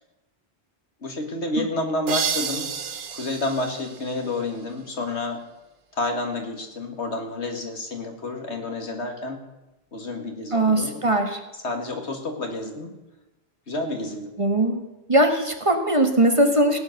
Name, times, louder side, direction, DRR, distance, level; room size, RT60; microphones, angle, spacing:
voice 1, 1.0-2.7 3.1-5.4 5.9-9.4 9.9-11.0 11.6-12.9 13.7-14.3, left 2 dB, 85° left, 3 dB, 2.4 m, -29 dB
sound 1, 2.1-4.8, right 7 dB, 55° right, 0.9 m, -31 dB
voice 2, 10.5-11.4 14.4-14.8 15.1-16.8, right 1 dB, 30° right, 5 dB, 1.6 m, -20 dB
17.0 x 9.6 x 6.6 m, 1.0 s
omnidirectional pair, 1.1 m